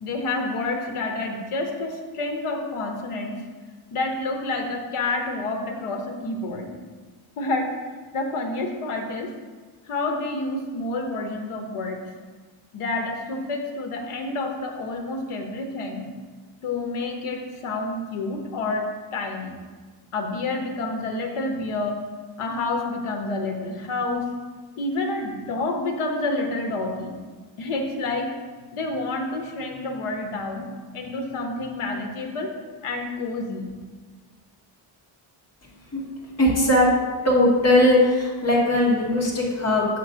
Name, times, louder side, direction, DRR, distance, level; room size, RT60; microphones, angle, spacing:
voice 1, 0.0-3.4 3.9-6.7 7.4-7.7 8.1-9.3 9.9-12.0 12.7-16.1 16.6-19.6 20.1-22.0 22.4-24.3 24.8-27.2 27.6-28.3 28.7-32.5 32.8-33.7, left 2 dB, 90° left, 3 dB, 1.1 m, -28 dB
voice 2, 36.4-36.9 37.2-39.9, left 1 dB, 30° left, -4 dB, 1.8 m, -19 dB
7.6 x 3.1 x 6.2 m, 1.4 s
wide cardioid pair, 135°, 50 cm